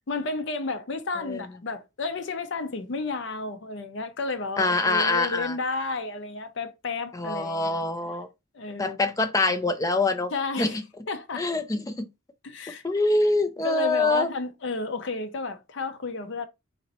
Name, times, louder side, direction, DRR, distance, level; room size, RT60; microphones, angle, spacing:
voice 1, 0.1-7.8 8.5-9.0 10.3-10.8 11.1-11.5 12.4-12.8 13.6-16.5, left 3 dB, 65° left, 0.6 m, -32 dB
voice 2, 4.6-5.5 7.1-8.3 8.8-10.3 10.6-10.7 11.3-12.1 12.8-14.3, left 2 dB, 15° left, 0.4 m, -24 dB
4.1 x 2.9 x 2.9 m
head